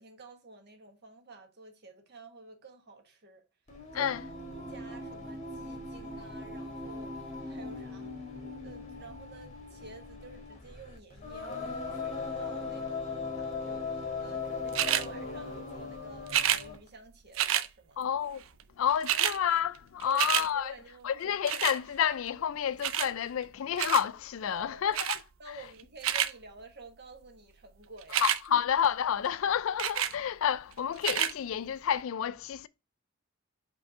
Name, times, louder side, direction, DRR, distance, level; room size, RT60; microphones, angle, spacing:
voice 1, 0.0-3.4 3.9-4.1 4.7-8.3 8.6-18.0 20.1-21.2 24.5-25.0 25.4-28.6, right 3 dB, 50° right, 1.3 m, -51 dB
Singing, 3.7-16.9, left 3 dB, 35° left, 1.4 m, -39 dB
sound 1, 14.7-15.1 16.3-16.6 17.3-17.7 18.6-18.7 18.9-19.4 19.7-20.5 21.5-21.8 22.8-23.1 23.8-24.1 24.9-25.2 25.8-26.3 28.0-28.4 29.8-30.1 31.0-31.3 32.0-32.1, right 11 dB, 65° right, 0.5 m, -28 dB
voice 2, 18.0-18.4 18.8-20.7 21.0-25.2 28.1-32.7, left 9 dB, 65° left, 0.4 m, -30 dB
5.2 x 3.4 x 5.4 m
head